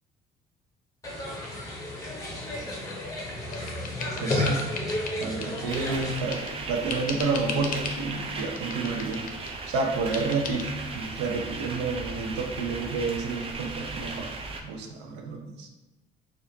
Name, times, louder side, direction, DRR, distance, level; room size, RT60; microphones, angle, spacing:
sound 1, 1.0-6.2, left 1 dB, 20° left, 1.0 m, -32 dB
sound 2, 2.9-6.6 6.9-8.0 8.4-9.6 10.1-10.6, left 4 dB, 55° left, 0.6 m, -38 dB
voice 1, 4.2-4.7 5.2-9.2 9.7-14.3 14.6-15.7, right 4 dB, 85° right, 3 dB, 0.6 m, -30 dB
sound 3, 5.7-14.6, right 3 dB, 35° right, 0.5 m, -37 dB
4.3 x 2.5 x 2.7 m, 1.1 s
cardioid pair, 110°, 17 cm